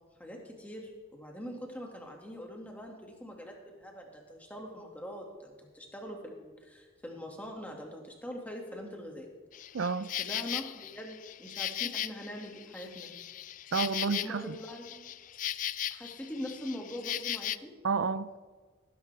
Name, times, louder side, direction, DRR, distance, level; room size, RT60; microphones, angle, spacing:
voice 1, 0.2-9.3 10.2-13.1 14.1-15.1 15.9-17.7, equal, 5° left, 0 dB, 2.0 m, -43 dB
Insect, 9.5-17.6, left 11 dB, 40° left, 0.3 m, -37 dB
voice 2, 9.7-10.1 13.7-14.6 17.8-18.4, right 5 dB, 65° right, 13 dB, 0.4 m, -30 dB
18.5 x 10.5 x 3.4 m, 1.5 s
head